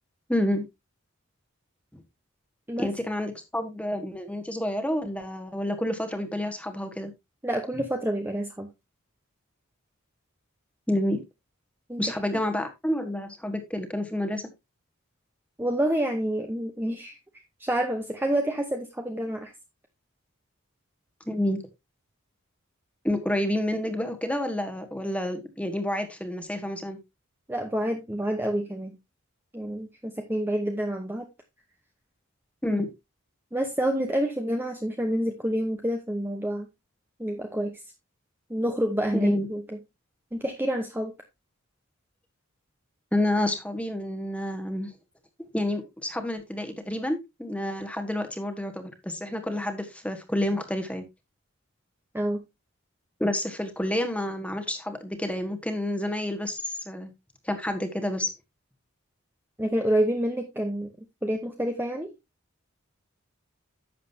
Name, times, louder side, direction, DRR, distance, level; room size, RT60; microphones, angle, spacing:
voice 1, 0.3-0.6 2.8-7.1 10.9-11.2 12.0-14.4 21.3-21.6 23.0-27.0 32.6-32.9 39.1-39.5 43.1-44.9 45.5-51.0 53.2-57.1 57.4-58.3, left 1 dB, 5° left, 1.4 m, -29 dB
voice 2, 7.4-8.7 11.9-12.2 15.6-17.2 17.6-19.5 27.5-28.9 29.5-31.3 33.5-36.7 37.2-37.8 38.5-39.8 40.3-41.1 52.1-52.4 59.6-62.1, right 1 dB, 10° right, 0.9 m, -28 dB
11.0 x 7.5 x 2.7 m
head